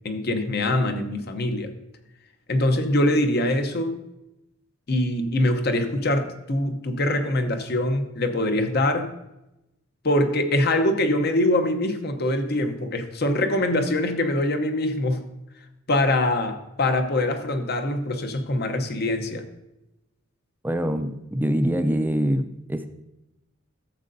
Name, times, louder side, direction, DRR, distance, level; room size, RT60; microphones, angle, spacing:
voice 1, 0.0-1.7 2.5-4.0 4.9-9.1 10.0-15.3 15.9-19.4, left 1 dB, 50° left, 7 dB, 0.8 m, -23 dB
voice 2, 20.6-22.9, equal, 10° right, 8 dB, 0.4 m, -24 dB
13.0 x 7.5 x 2.6 m, 0.92 s
head